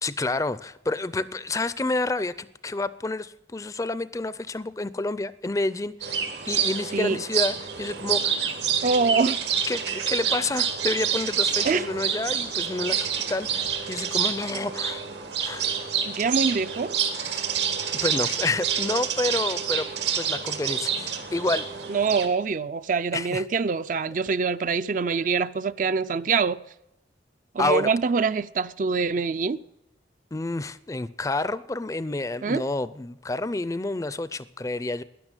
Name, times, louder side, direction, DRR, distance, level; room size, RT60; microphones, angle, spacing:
voice 1, 0.0-8.4 9.7-15.0 15.4-15.7 17.3-17.5 17.9-21.7 23.1-23.4 27.6-27.9 30.3-35.0, left 2 dB, 20° left, 0.4 m, -29 dB
sound 1, 6.0-22.3, right 7 dB, 80° right, 1.8 m, -28 dB
voice 2, 8.8-9.4 11.6-11.9 16.0-16.9 21.9-26.6 27.5-29.6 32.4-32.6, right 5 dB, 45° right, 0.4 m, -25 dB
12.5 x 10.5 x 8.9 m
head